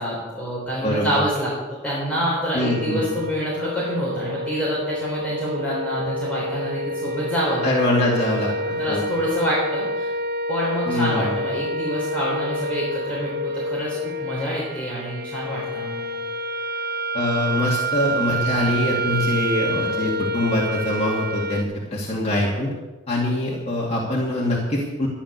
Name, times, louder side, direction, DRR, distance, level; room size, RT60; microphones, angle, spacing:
voice 1, 0.0-1.6 1.8-7.7 8.4-10.1 10.5-16.1, equal, 5° left, -7 dB, 3.7 m, -27 dB
voice 2, 0.8-1.2 2.5-3.2 7.6-9.0 10.9-11.4 17.1-22.7 23.1-25.1, left 1 dB, 35° left, -4 dB, 2.4 m, -23 dB
sound 1, 2.6-21.6, equal, 50° right, 0.9 m, -28 dB
13.0 x 10.0 x 6.7 m, 1.2 s
head